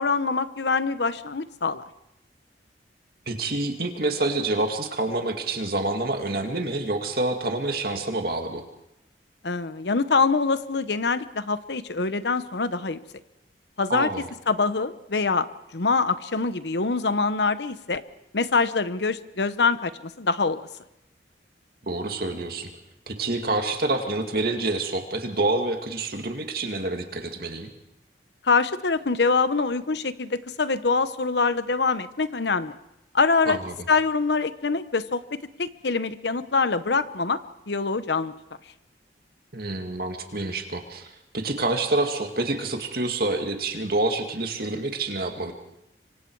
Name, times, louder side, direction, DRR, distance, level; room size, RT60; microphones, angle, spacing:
voice 1, 0.0-1.8 9.4-13.0 13.8-14.1 14.5-15.5 15.7-18.0 18.3-20.6 28.4-32.7 33.1-33.6 33.9-37.4 37.7-38.3, left 4 dB, 70° left, 13 dB, 0.9 m, -24 dB
voice 2, 3.3-8.6 13.9-14.3 21.8-22.7 23.1-27.7 33.4-33.7 39.5-45.5, right 2 dB, 55° right, 4 dB, 2.2 m, -27 dB
26.0 x 24.5 x 4.7 m, 0.87 s
head